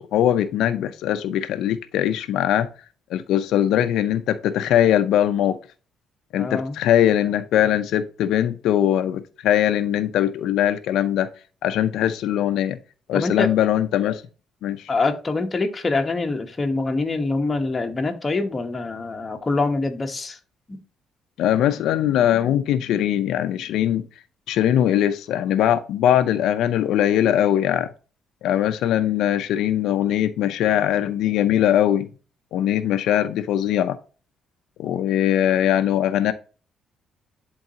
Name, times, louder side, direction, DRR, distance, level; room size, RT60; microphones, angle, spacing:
voice 1, 0.0-2.7 3.1-5.6 6.3-11.3 11.6-12.8 13.1-14.2 14.6-14.9 21.4-24.1 24.5-27.9 28.4-32.1 32.5-34.0 34.8-36.3, left 11 dB, 80° left, 0.5 m, -21 dB
voice 2, 6.4-6.8 13.1-13.5 14.9-20.4 20.7-20.8, left 3 dB, 20° left, 1.1 m, -25 dB
10.5 x 3.9 x 2.8 m
cardioid pair, 130°, 0 cm